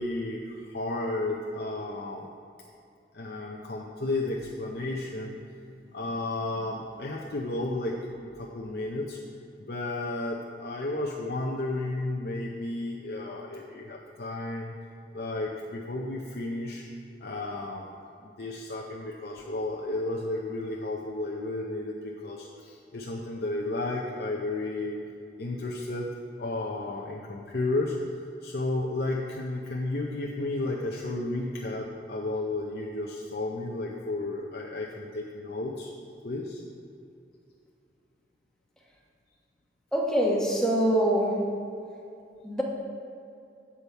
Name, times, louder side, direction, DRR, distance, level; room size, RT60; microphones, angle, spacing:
voice 1, 0.0-2.3 3.1-5.4 5.9-8.0 8.2-9.2 9.6-14.7 15.1-16.9 17.2-17.8 18.2-25.0 25.4-26.1 26.4-35.9 36.2-36.6, left 2 dB, 60° left, -2 dB, 0.6 m, -33 dB
voice 2, 39.9-41.4 42.4-42.6, right 1 dB, 5° left, -3 dB, 1.0 m, -24 dB
8.5 x 6.9 x 4.6 m, 2.5 s
head